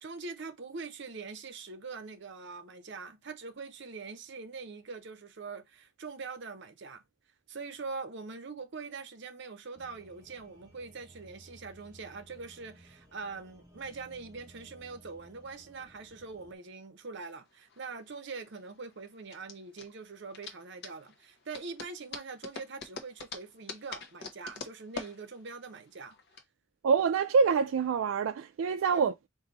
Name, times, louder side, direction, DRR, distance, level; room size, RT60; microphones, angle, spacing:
voice 1, 0.0-7.0 7.5-26.1 28.9-29.1, right 4 dB, 60° right, 0.7 m, -43 dB
sound 1, 9.7-16.6, right 1 dB, 15° right, 1.2 m, -58 dB
sound 2, 17.5-26.4, left 4 dB, 55° left, 0.8 m, -45 dB
voice 2, 26.8-29.3, right 5 dB, 75° right, 0.3 m, -26 dB
4.0 x 2.6 x 3.9 m
head